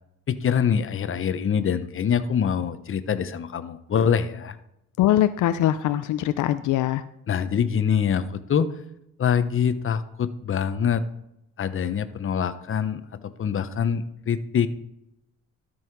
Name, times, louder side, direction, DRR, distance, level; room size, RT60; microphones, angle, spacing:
voice 1, 0.3-4.6 7.3-8.7 9.2-11.0 11.6-14.7, left 7 dB, 45° left, 11 dB, 0.9 m, -24 dB
voice 2, 5.0-7.0, left 13 dB, 80° left, 12 dB, 0.6 m, -22 dB
12.5 x 5.6 x 4.7 m, 0.82 s
cardioid pair, 90°, 30 cm